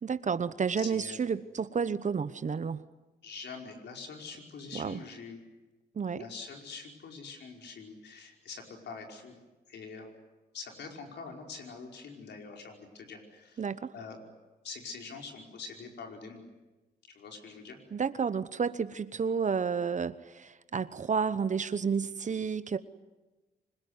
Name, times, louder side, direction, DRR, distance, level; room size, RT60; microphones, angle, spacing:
voice 1, 0.0-2.8 4.7-5.0 5.9-6.2 13.6-13.9 17.9-22.8, right 6 dB, 45° right, 13 dB, 1.0 m, -31 dB
voice 2, 0.8-1.2 3.2-5.4 6.1-9.4 9.7-10.1 10.5-13.6 13.9-14.2 14.6-16.4 17.1-17.8, left 4 dB, 80° left, 2 dB, 5.1 m, -44 dB
25.5 x 21.0 x 9.7 m, 1.1 s
cardioid pair, 85°, 17 cm